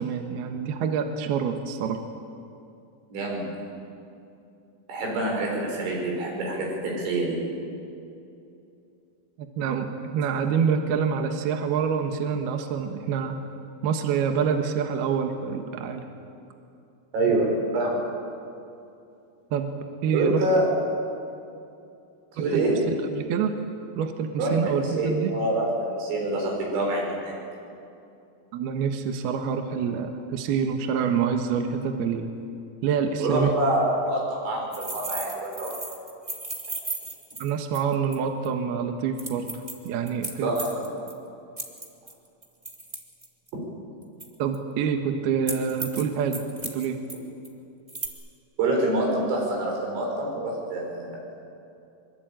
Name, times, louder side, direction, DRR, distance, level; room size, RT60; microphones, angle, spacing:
voice 1, 0.0-2.0 9.4-13.4 13.8-16.0 19.5-19.8 20.0-20.4 22.5-23.5 24.0-25.3 28.5-32.3 32.8-33.5 37.4-40.5 44.4-47.0, right 6 dB, 70° right, 5 dB, 3.0 m, -26 dB
voice 2, 3.1-3.5 4.9-7.4 17.1-18.0 20.1-20.7 22.4-22.8 24.4-24.6 24.9-27.4 33.2-35.7 40.4-40.9 48.6-51.1, right 2 dB, 85° right, -1 dB, 8.2 m, -26 dB
sound 1, 34.7-38.1 38.4-38.5 39.2-41.1 41.6-43.5 44.2-44.6 45.5-46.0 46.3-47.1 47.4-47.5 47.9-48.1, right 2 dB, 20° right, 0.8 m, -35 dB
24.0 x 24.0 x 9.0 m, 2.6 s
omnidirectional pair, 5.2 m